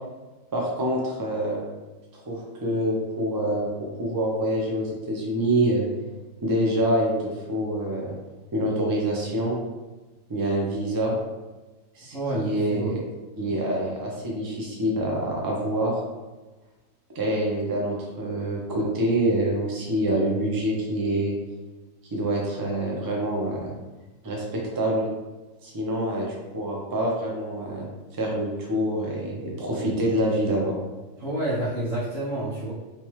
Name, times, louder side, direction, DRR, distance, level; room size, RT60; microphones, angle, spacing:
voice 1, 0.5-1.6 2.1-3.7 4.0-5.9 6.4-8.1 8.5-9.6 10.3-11.1 11.9-13.0 13.4-16.0 17.1-21.4 22.1-23.7 24.2-25.0 25.6-26.3 26.5-27.9 28.1-30.7, right 1 dB, 30° right, -2 dB, 0.4 m, -26 dB
voice 2, 12.1-12.9 31.2-32.7, right 1 dB, 85° right, -11 dB, 1.4 m, -29 dB
3.4 x 3.0 x 3.0 m, 1.2 s
omnidirectional pair, 1.4 m